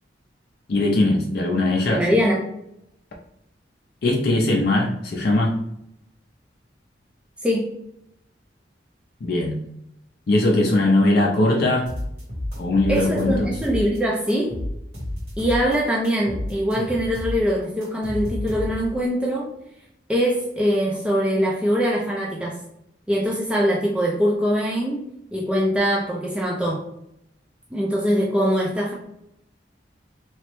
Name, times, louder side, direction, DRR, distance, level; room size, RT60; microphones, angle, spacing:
voice 1, 0.7-2.0 4.0-5.5 9.2-9.6 10.3-11.9 12.6-13.6, left 2 dB, 60° left, 0 dB, 0.4 m, -20 dB
voice 2, 1.9-2.4 7.4-7.7 12.9-14.6 15.4-19.5 20.1-22.6 23.1-25.0 25.3-26.8 27.7-28.9, equal, 5° right, -3 dB, 0.3 m, -22 dB
sound 1, 11.9-14.0 14.3-15.8 16.0-19.0, left 1 dB, 75° right, 1.4 m, -31 dB
3.1 x 2.0 x 2.9 m, 0.77 s
head